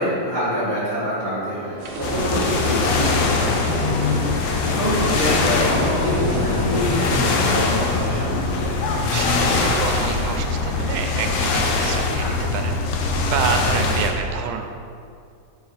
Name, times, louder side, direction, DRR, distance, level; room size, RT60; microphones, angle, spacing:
voice 1, 0.0-4.1 4.4-8.8, equal, 50° left, -10 dB, 1.0 m, -26 dB
sound 1, 1.5-7.2, left 2 dB, 45° right, 1.4 m, -37 dB
sound 2, 1.8-7.7, right 3 dB, 70° right, 1.4 m, -32 dB
sound 3, 2.0-14.1, left 3 dB, 80° left, 1.4 m, -22 dB
voice 2, 9.1-14.7, right 6 dB, 90° right, 5 dB, 2.1 m, -28 dB
6.2 x 5.1 x 4.0 m, 2.3 s
omnidirectional pair, 3.6 m